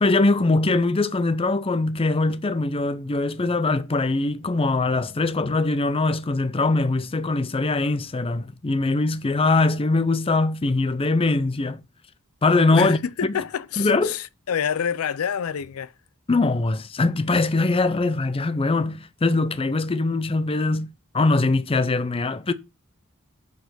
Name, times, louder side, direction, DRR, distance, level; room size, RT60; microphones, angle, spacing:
voice 1, 0.0-11.8 12.4-13.0 13.3-13.4 13.8-14.1 16.3-20.9 21.1-22.5, left 3 dB, 25° left, 0.5 m, -22 dB
voice 2, 12.7-15.9, left 8 dB, 85° left, 0.5 m, -27 dB
6.7 x 4.8 x 5.9 m
head